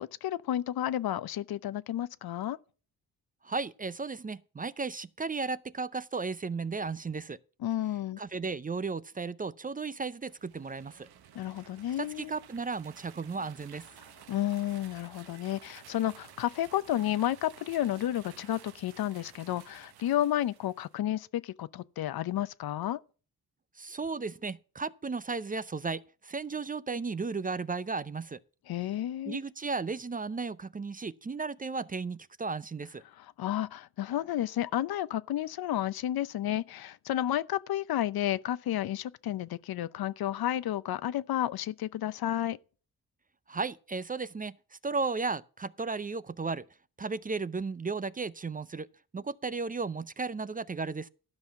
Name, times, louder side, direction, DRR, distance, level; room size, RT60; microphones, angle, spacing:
voice 1, 0.0-2.6 7.6-8.2 11.3-12.3 14.3-23.0 28.7-29.4 33.2-42.6, left 12 dB, 75° left, 0.7 m, -31 dB
voice 2, 3.4-7.4 8.2-11.1 12.0-13.9 23.8-28.4 29.3-33.0 43.5-46.7 47.0-48.9 49.1-51.1, right 4 dB, 25° right, 0.5 m, -35 dB
sound 1, 10.1-20.9, right 10 dB, 85° right, 1.1 m, -54 dB
12.5 x 5.6 x 7.0 m
cardioid pair, 80°, 37 cm